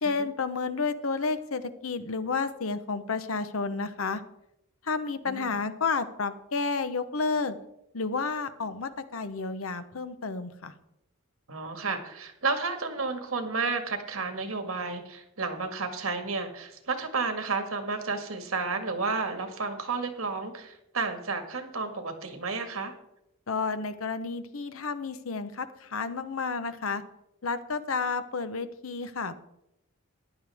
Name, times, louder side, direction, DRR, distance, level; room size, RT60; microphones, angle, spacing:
voice 1, 0.0-4.2 4.9-7.6 7.9-10.7 23.5-27.0 27.4-29.3, left 4 dB, 80° left, 11 dB, 0.9 m, -31 dB
voice 2, 11.5-22.9, right 4 dB, 85° right, 6 dB, 1.8 m, -32 dB
14.5 x 11.0 x 3.5 m, 0.83 s
head